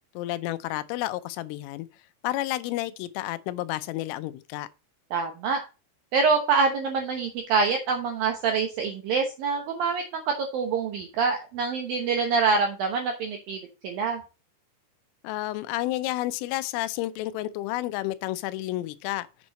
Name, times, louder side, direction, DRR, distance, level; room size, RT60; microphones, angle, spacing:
voice 1, 0.2-1.9 2.2-4.7 15.2-19.3, left 16 dB, 85° left, 3.2 m, -31 dB
voice 2, 5.1-5.6 6.1-14.2, right 5 dB, 85° right, 2.0 m, -26 dB
7.9 x 7.0 x 4.1 m
omnidirectional pair, 5.7 m